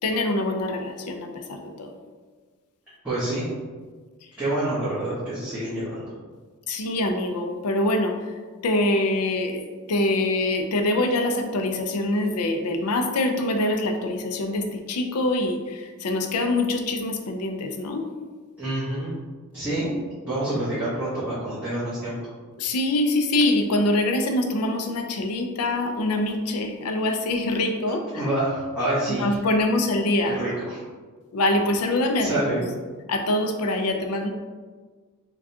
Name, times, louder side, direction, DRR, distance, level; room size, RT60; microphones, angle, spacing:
voice 1, 0.0-1.3 1.8-1.9 6.7-8.1 8.6-9.6 9.9-15.6 16.0-18.0 22.6-28.0 29.2-30.3 31.3-32.3 33.1-34.3, left 2 dB, 85° left, 5 dB, 0.5 m, -24 dB
voice 2, 3.0-3.5 4.4-6.1 18.6-19.1 19.5-19.9 20.2-22.3 27.8-29.4 30.2-30.8 32.2-32.7, right 1 dB, 5° right, -14 dB, 1.0 m, -27 dB
4.7 x 2.3 x 2.7 m, 1.4 s
head